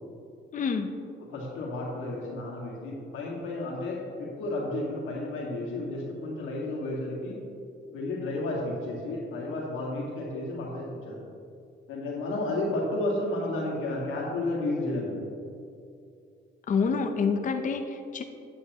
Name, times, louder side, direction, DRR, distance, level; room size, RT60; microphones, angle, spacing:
voice 1, 0.5-0.9 16.7-18.2, left 5 dB, 40° left, 6 dB, 0.6 m, -27 dB
voice 2, 1.3-7.4 7.9-11.2 11.9-15.2, left 2 dB, 90° left, -2 dB, 1.9 m, -32 dB
9.1 x 8.3 x 3.0 m, 2.5 s
cardioid pair, 90°, 20 cm